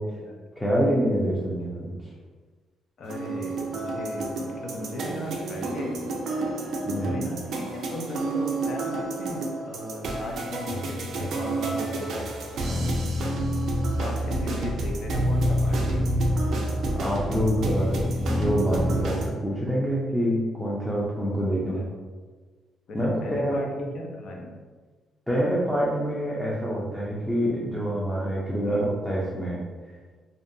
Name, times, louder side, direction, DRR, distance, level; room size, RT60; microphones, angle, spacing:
voice 1, 0.0-0.4 3.0-6.0 7.0-12.3 14.0-16.2 21.7-21.9 22.9-23.7 23.9-24.5 28.7-28.9, left 1 dB, 60° left, 0 dB, 0.5 m, -37 dB
voice 2, 0.6-1.9 6.9-7.2 12.6-13.1 17.0-21.9 22.9-23.9 25.3-29.7, equal, 5° left, -6 dB, 0.5 m, -26 dB
sound 1, 3.1-19.3, right 1 dB, 70° right, 0.4 m, -28 dB
2.6 x 2.2 x 2.6 m, 1.4 s
cardioid pair, 90°, 0 cm